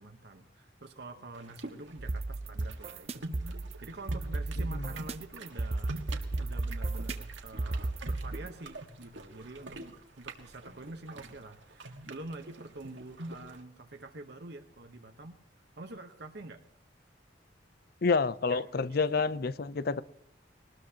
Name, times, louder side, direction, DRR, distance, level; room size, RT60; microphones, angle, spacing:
voice 1, 0.0-6.0 6.4-15.4 15.8-16.6 18.5-18.6, right 2 dB, 60° right, 5 dB, 1.0 m, -46 dB
sound 1, 1.3-13.6, right 2 dB, 75° right, 1.6 m, -46 dB
sound 2, 2.0-8.5, right 2 dB, 35° right, 0.5 m, -34 dB
voice 2, 18.0-20.0, left 4 dB, 55° left, 16 dB, 0.6 m, -28 dB
21.0 x 19.5 x 2.9 m, 0.73 s
head